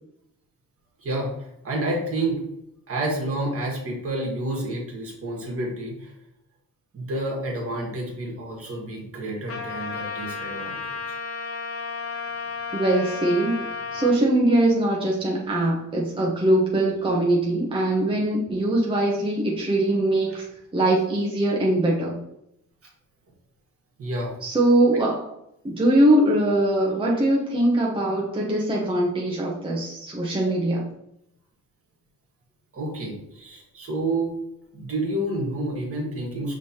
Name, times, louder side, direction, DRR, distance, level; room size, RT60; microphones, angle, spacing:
voice 1, 1.0-2.4 2.9-6.1 6.9-11.0 24.0-24.3 32.7-34.3 34.7-36.5, right 1 dB, 50° right, -1 dB, 1.6 m, -29 dB
Trumpet, 9.5-14.2, left 5 dB, 50° left, 0.8 m, -33 dB
voice 2, 12.7-20.5 20.7-22.2 24.4-25.3 25.6-30.9, right 1 dB, 15° right, -3 dB, 0.8 m, -22 dB
5.2 x 3.2 x 2.8 m, 0.79 s
cardioid pair, 90°, 30 cm